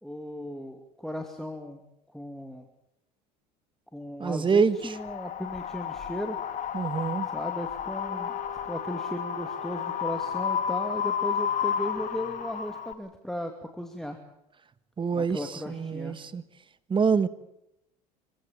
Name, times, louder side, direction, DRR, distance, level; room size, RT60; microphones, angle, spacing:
voice 1, 0.0-1.8 2.1-2.7 3.9-6.4 7.3-14.2 15.1-16.2, equal, ahead, 4 dB, 2.5 m, -36 dB
voice 2, 4.2-4.9 6.7-7.3 15.0-16.4 16.9-17.3, right 5 dB, 25° right, 14 dB, 1.5 m, -26 dB
Wind, 4.8-12.9, left 8 dB, 40° left, 2.1 m, -32 dB
Wind instrument woodwind instrument, 8.0-12.4, left 3 dB, 70° left, 6.5 m, -44 dB
25.5 x 16.0 x 8.9 m, 0.84 s
hypercardioid pair, 85°, 20 cm